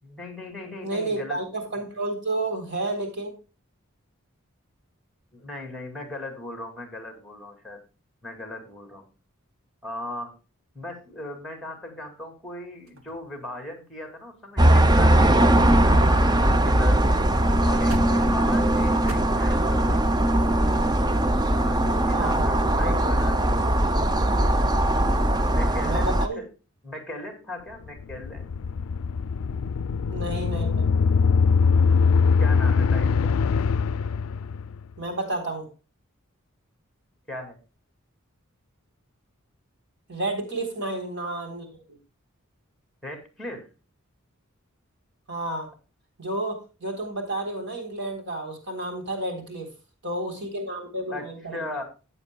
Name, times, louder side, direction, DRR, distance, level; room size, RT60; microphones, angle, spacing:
voice 1, 0.0-1.4 5.3-7.8 8.2-9.1 9.8-10.3 10.7-17.2 17.6-20.2 21.4-23.3 24.7-25.1 25.5-26.5 26.8-28.6 32.4-33.4 37.3-37.6 43.0-43.7 51.1-51.8, left 1 dB, ahead, 5 dB, 2.4 m, -38 dB
voice 2, 0.8-3.3 22.1-22.5 22.8-23.2 25.8-26.4 30.1-30.8 35.0-35.7 40.1-41.7 45.3-45.7 46.2-49.7 50.0-51.7, right 2 dB, 55° right, 3 dB, 3.7 m, -31 dB
sound 1, 12.9-13.7 14.3-14.4 14.6-14.9 15.2-16.8 17.0-17.2 17.5-19.2, equal, 75° right, 1.8 m, -38 dB
sound 2, 14.6-26.3, right 1 dB, 20° right, 0.6 m, -20 dB
sound 3, 27.9-34.8, left 5 dB, 80° left, 0.4 m, -22 dB
14.0 x 8.6 x 2.2 m, 0.32 s
head